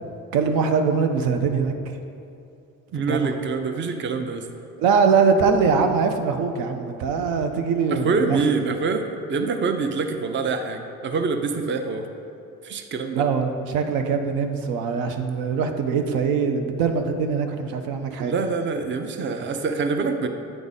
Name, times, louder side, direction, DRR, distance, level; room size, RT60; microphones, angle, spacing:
voice 1, 0.3-1.7 3.1-3.3 4.8-8.4 13.1-18.3, right 5 dB, 80° right, 5 dB, 0.6 m, -22 dB
voice 2, 2.9-4.5 7.9-12.1 12.6-13.2 18.2-20.3, right 4 dB, 35° right, 6 dB, 0.5 m, -25 dB
8.9 x 3.5 x 4.0 m, 2.6 s
cardioid pair, 90°, 34 cm